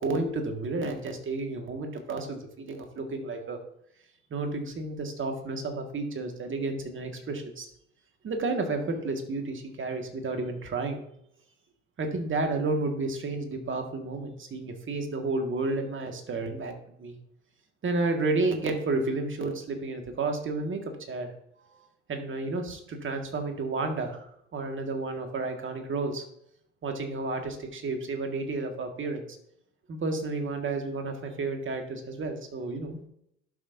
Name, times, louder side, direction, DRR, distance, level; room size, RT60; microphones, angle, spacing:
voice 1, 0.0-3.6 4.3-7.7 8.2-11.0 12.0-16.7 17.0-17.2 17.8-20.8 21.1-21.3 22.1-24.2 24.5-26.2 26.8-29.3 29.9-33.0, right 3 dB, 35° right, 4 dB, 1.8 m, -31 dB
11.5 x 5.7 x 2.6 m, 0.74 s
hypercardioid pair, 65°, 35 cm